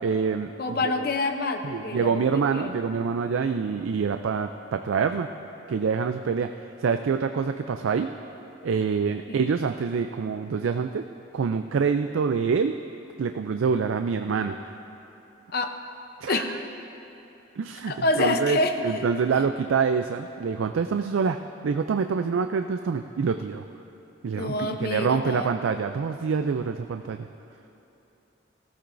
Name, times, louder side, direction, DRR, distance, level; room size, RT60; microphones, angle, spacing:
voice 1, 0.0-1.1 1.6-5.3 5.7-6.5 6.8-8.1 8.6-11.0 11.3-12.8 13.2-14.7 16.2-16.6 17.6-18.6 18.8-21.4 21.6-23.6 24.2-27.3, right 5 dB, 75° right, 7 dB, 0.4 m, -26 dB
voice 2, 0.6-2.7 9.3-9.4 15.5-15.7 16.3-16.5 17.8-19.1 24.3-25.5, left 2 dB, 50° left, 6 dB, 0.7 m, -27 dB
18.0 x 13.5 x 2.6 m, 2.9 s
head